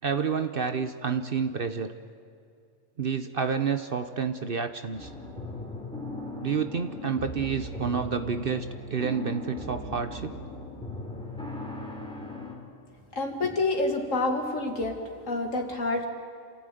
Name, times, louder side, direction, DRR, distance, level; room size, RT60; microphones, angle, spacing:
voice 1, 0.0-1.9 3.0-5.1 6.4-8.7 8.9-10.4, right 6 dB, 50° right, 9 dB, 1.0 m, -29 dB
sound 1, 4.9-12.5, left 2 dB, 5° left, 3.7 m, -38 dB
voice 2, 13.2-15.0 15.3-16.0, left 2 dB, 80° left, 3 dB, 2.7 m, -28 dB
27.5 x 15.5 x 9.3 m, 2.4 s
omnidirectional pair, 1.3 m